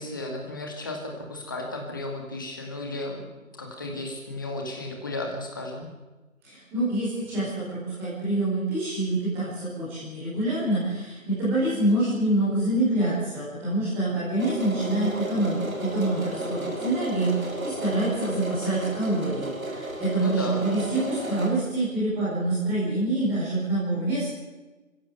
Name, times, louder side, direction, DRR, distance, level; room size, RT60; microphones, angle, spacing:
voice 1, 0.0-3.2 3.6-5.9 20.2-20.7, left 2 dB, 15° left, 2 dB, 2.2 m, -34 dB
voice 2, 6.4-24.3, right 1 dB, 5° right, -9 dB, 5.0 m, -26 dB
sound 1, 14.4-21.5, right 1 dB, 75° right, 5.6 m, -33 dB
26.5 x 16.5 x 8.0 m, 1.2 s
figure-of-eight pair, 170°, 41 cm